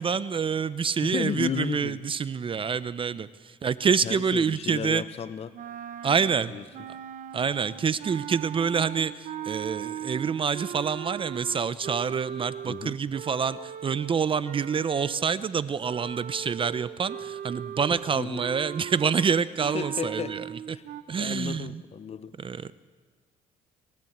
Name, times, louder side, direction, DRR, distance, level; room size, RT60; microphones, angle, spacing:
voice 1, 0.0-5.0 6.0-6.5 7.3-20.8 21.1-21.8 22.4-22.7, right 6 dB, 35° right, 16 dB, 0.6 m, -27 dB
voice 2, 1.0-2.0 4.0-5.5 6.5-6.6 12.7-13.0 18.1-18.4 19.7-20.4 20.7-20.8 21.2-22.4, left 8 dB, 40° left, 14 dB, 0.8 m, -33 dB
sound 1, 5.5-15.4 15.8-21.0, right 10 dB, 55° right, 1.0 m, -39 dB
27.5 x 12.0 x 8.0 m, 1.4 s
cardioid pair, 100°, 16 cm